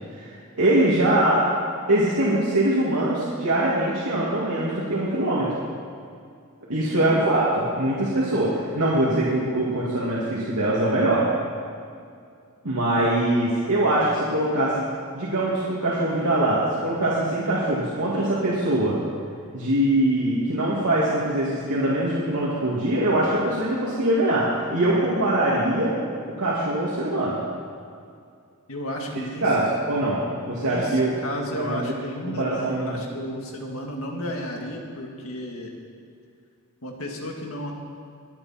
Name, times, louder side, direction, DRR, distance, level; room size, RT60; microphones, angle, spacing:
voice 1, 0.5-1.4 1.9-5.5 6.7-11.3 12.6-14.9 15.1-19.0 19.5-24.4 24.7-26.0 26.4-27.4 29.4-31.1 31.5-31.8 32.4-33.0, right 1 dB, 90° right, -7 dB, 2.4 m, -22 dB
voice 2, 28.7-29.5 30.6-35.7 36.8-37.7, left 1 dB, 70° left, 1 dB, 2.0 m, -33 dB
23.0 x 8.5 x 4.3 m, 2.3 s
head